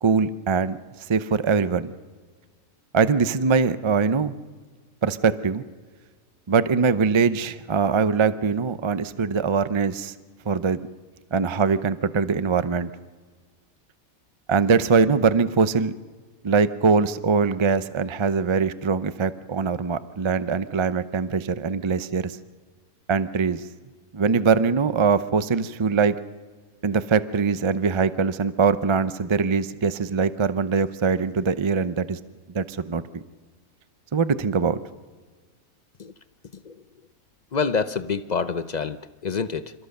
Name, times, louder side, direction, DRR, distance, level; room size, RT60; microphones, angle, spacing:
voice 1, 0.0-0.8 1.1-1.9 2.9-4.3 5.0-5.6 6.5-10.1 10.5-10.8 11.3-12.9 14.5-15.9 16.4-22.4 23.1-23.6 24.1-26.2 26.8-32.2 32.5-33.2 34.1-34.8, right 5 dB, 35° right, 13 dB, 0.4 m, -22 dB
voice 2, 36.5-36.8 37.5-39.7, left 5 dB, 45° left, 12 dB, 0.5 m, -27 dB
27.5 x 14.0 x 6.7 m, 1.5 s
omnidirectional pair, 1.5 m